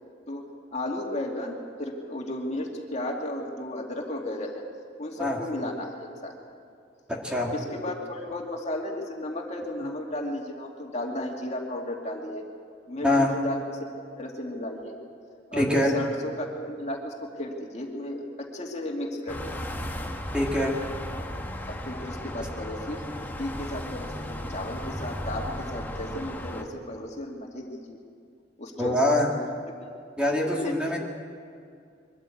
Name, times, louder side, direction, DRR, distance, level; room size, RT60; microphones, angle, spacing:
voice 1, 0.3-4.6 5.0-6.3 7.5-12.4 12.9-13.8 14.2-14.9 15.5-19.4 21.7-28.0 28.6-29.0 30.3-31.0, left 1 dB, 40° left, 0 dB, 2.4 m, -34 dB
voice 2, 7.1-7.5 13.0-13.3 15.6-16.0 20.3-20.8 28.8-29.3 30.2-31.0, left 1 dB, 5° right, -1 dB, 2.1 m, -24 dB
sound 1, 19.3-26.6, left 1 dB, 10° left, 1.4 m, -35 dB
23.0 x 13.5 x 8.5 m, 2.4 s
head